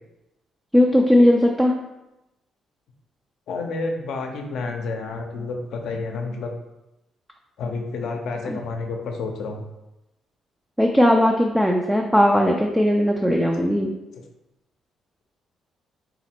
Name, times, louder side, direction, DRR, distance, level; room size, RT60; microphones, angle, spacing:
voice 1, 0.7-1.7 8.5-8.6 10.8-13.9, left 1 dB, 5° right, 1 dB, 0.4 m, -18 dB
voice 2, 3.5-6.5 7.6-9.6, left 3 dB, 75° left, 3 dB, 0.6 m, -30 dB
3.9 x 2.1 x 4.3 m, 0.93 s
cardioid pair, 90°, 0 cm